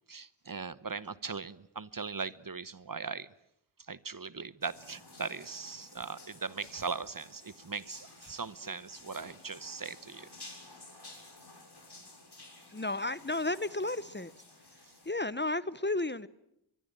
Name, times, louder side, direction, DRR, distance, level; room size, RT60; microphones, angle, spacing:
voice 1, 0.1-3.3 3.9-10.3, right 4 dB, 45° right, 1.0 m, -39 dB
sound 1, 4.6-15.1, left 2 dB, 55° left, 6.9 m, -53 dB
voice 2, 12.7-14.4 15.0-16.3, left 2 dB, 25° left, 0.9 m, -33 dB
23.5 x 23.5 x 9.1 m
cardioid pair, 40°, 47 cm